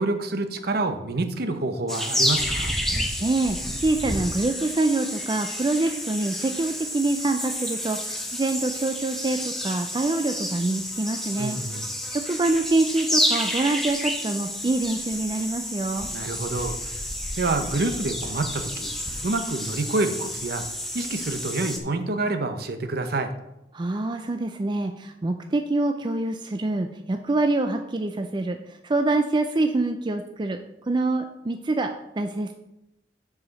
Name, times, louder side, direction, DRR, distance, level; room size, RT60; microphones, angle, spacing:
voice 1, 0.0-2.7 11.4-11.9 16.1-17.1 17.4-18.9 19.2-20.6 20.9-23.3, right 2 dB, 60° right, 8 dB, 0.8 m, -27 dB
sound 1, 1.9-21.8, left 1 dB, ahead, 0.9 m, -30 dB
voice 2, 3.2-11.6 12.1-16.1 23.7-30.6 30.9-31.9 32.2-32.5, right 2 dB, 25° right, 6 dB, 0.4 m, -25 dB
6.8 x 4.9 x 6.4 m, 0.89 s
head